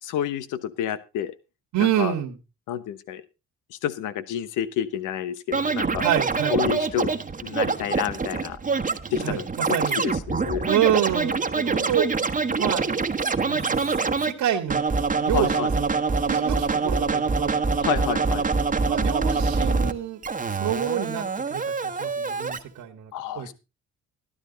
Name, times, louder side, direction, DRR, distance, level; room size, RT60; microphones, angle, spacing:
voice 1, 0.0-1.3 1.8-2.1 2.7-3.2 3.7-6.0 6.5-7.1 7.4-8.6 9.1-10.7 15.3-15.7 17.8-18.4 23.1-23.5, left 10 dB, 85° left, 14 dB, 1.1 m, -29 dB
voice 2, 1.7-2.4 6.0-6.5 9.2-10.0 10.7-12.1 12.6-12.8 13.4-13.8 14.2-14.8 15.2-17.8 18.8-20.2 20.5-21.2 21.5-23.5, right 10 dB, 75° right, 2 dB, 1.7 m, -27 dB
Scratching (performance technique), 5.5-14.3 14.7-19.9 20.2-22.6, right 4 dB, 25° right, 1.3 m, -25 dB
12.5 x 12.5 x 4.0 m, 0.29 s
cardioid pair, 90°, 30 cm